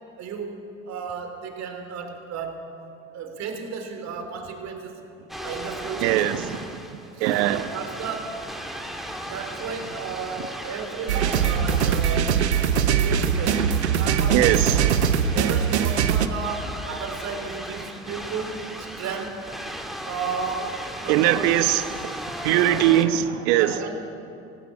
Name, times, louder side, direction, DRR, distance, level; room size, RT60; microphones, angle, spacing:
voice 1, 0.2-2.7 3.1-5.0 5.4-6.3 7.2-8.4 9.2-12.5 12.8-13.7 14.0-15.0 15.3-19.5 20.0-21.4 22.5-22.9 23.5-24.0, right 5 dB, 55° right, 5 dB, 3.6 m, -33 dB
sound 1, 5.3-23.0, equal, ahead, 2.3 m, -37 dB
voice 2, 6.0-6.6 7.2-7.6 14.3-14.8 21.1-22.1 22.4-23.7, right 13 dB, 70° right, 11 dB, 1.2 m, -21 dB
sound 2, 11.1-16.3, right 7 dB, 90° right, 1.0 m, -21 dB
17.5 x 17.0 x 8.7 m, 2.6 s
hypercardioid pair, 70°, 33 cm